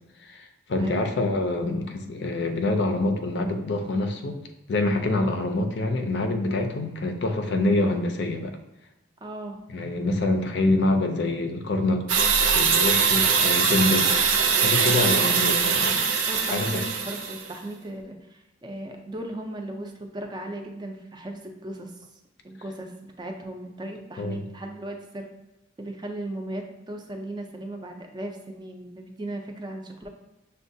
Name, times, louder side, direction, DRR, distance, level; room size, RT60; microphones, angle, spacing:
voice 1, 0.2-4.4 4.7-8.6 9.7-12.0 12.5-14.1 14.6-16.1 16.5-16.8 24.2-24.4, left 2 dB, 60° left, 5 dB, 0.4 m, -26 dB
voice 2, 0.8-1.1 9.2-9.6 14.9-21.9 22.4-25.3 25.8-30.1, right 1 dB, 20° right, 3 dB, 0.4 m, -37 dB
sound 1, 12.1-17.5, right 6 dB, 80° right, 0.5 m, -22 dB
6.2 x 2.2 x 2.6 m, 1.0 s
head